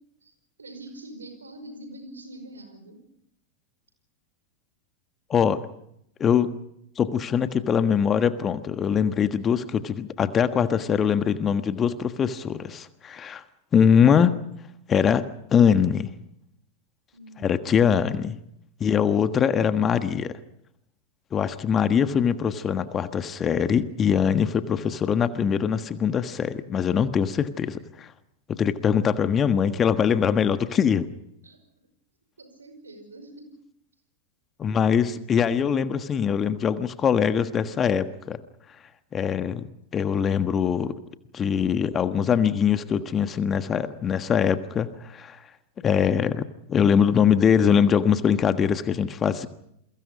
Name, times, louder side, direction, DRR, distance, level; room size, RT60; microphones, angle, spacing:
voice 1, 0.6-3.0 17.1-17.6 31.4-31.6 32.4-33.5, right 1 dB, 75° right, 9 dB, 5.3 m, -44 dB
voice 2, 5.3-5.7 6.2-6.5 7.0-13.4 13.7-14.3 14.9-16.1 17.4-18.4 18.8-20.4 21.3-28.1 28.5-31.1 34.6-38.4 39.1-39.6 39.9-40.9 41.3-45.4 45.8-49.5, left 7 dB, 25° left, 11 dB, 1.4 m, -22 dB
29.0 x 23.0 x 5.2 m, 0.77 s
figure-of-eight pair, 90°, 0 cm